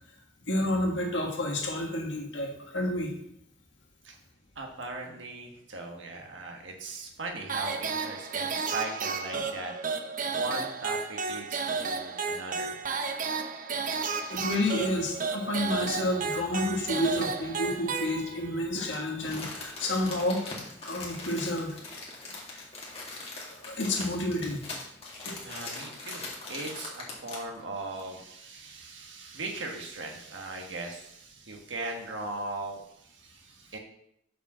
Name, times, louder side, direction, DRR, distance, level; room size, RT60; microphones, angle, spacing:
voice 1, 0.4-3.1 14.3-20.4 20.9-21.7 23.5-24.6 25.3-25.4, left 1 dB, 75° left, 0 dB, 1.7 m, -30 dB
voice 2, 4.5-9.7 10.3-12.7 25.4-33.8, right 2 dB, 85° right, 2 dB, 1.5 m, -39 dB
sound 1, 7.5-18.6, right 4 dB, 45° right, 0.7 m, -32 dB
Crumpling crinkling, 18.9-27.6 28.0-28.1, left 2 dB, 35° left, 2.2 m, -41 dB
6.7 x 5.0 x 6.2 m, 0.75 s
head